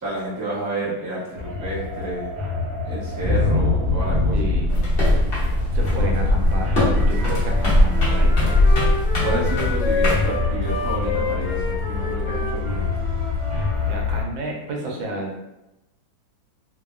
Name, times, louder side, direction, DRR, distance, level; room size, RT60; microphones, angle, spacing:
voice 1, 0.0-2.3 2.8-4.4 6.0-6.1 9.2-12.9, right 2 dB, 30° right, -9 dB, 0.3 m, -30 dB
sound 1, 1.4-14.2, left 3 dB, 60° right, 1.0 m, -23 dB
voice 2, 4.3-4.8 5.7-8.7 13.9-15.4, right 1 dB, 85° right, 0 dB, 1.4 m, -31 dB
sound 2, 4.7-10.3, left 1 dB, 45° left, 0.8 m, -21 dB
Wind instrument woodwind instrument, 7.5-13.8, left 3 dB, 85° left, 1.3 m, -30 dB
3.2 x 2.1 x 2.3 m, 0.96 s
omnidirectional pair, 2.0 m